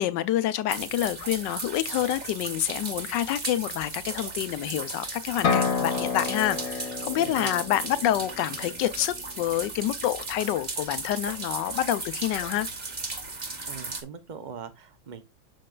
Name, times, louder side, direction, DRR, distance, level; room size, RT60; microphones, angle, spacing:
voice 1, 0.0-12.7, left 12 dB, 80° left, 1.3 m, -28 dB
sound 1, 0.7-14.0, right 3 dB, 25° right, 1.1 m, -36 dB
sound 2, 5.4-9.2, left 5 dB, 55° left, 1.3 m, -30 dB
voice 2, 7.2-7.5 13.7-15.2, right 7 dB, 75° right, 0.4 m, -41 dB
7.6 x 6.5 x 2.3 m
omnidirectional pair, 1.9 m